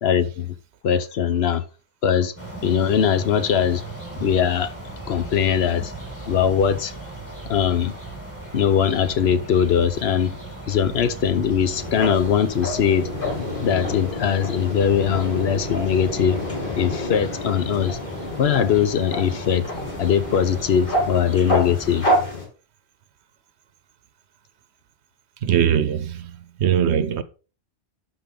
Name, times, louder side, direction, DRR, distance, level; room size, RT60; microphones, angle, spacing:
voice 1, 0.0-0.5 0.8-1.6 2.0-2.3 2.6-3.8 4.2-4.7 5.1-5.9 6.3-6.9 7.5-7.9 8.5-10.3 10.7-13.1 13.6-16.4 16.8-18.0 18.4-19.6 20.0-22.1, left 8 dB, 70° left, 1.0 m, -21 dB
sound 1, 2.4-22.1, right 2 dB, 10° left, 2.4 m, -37 dB
sound 2, 11.7-22.5, left 1 dB, 55° left, 2.4 m, -28 dB
voice 2, 25.4-27.2, right 9 dB, 85° right, 0.9 m, -21 dB
12.0 x 4.1 x 3.7 m
omnidirectional pair, 1.1 m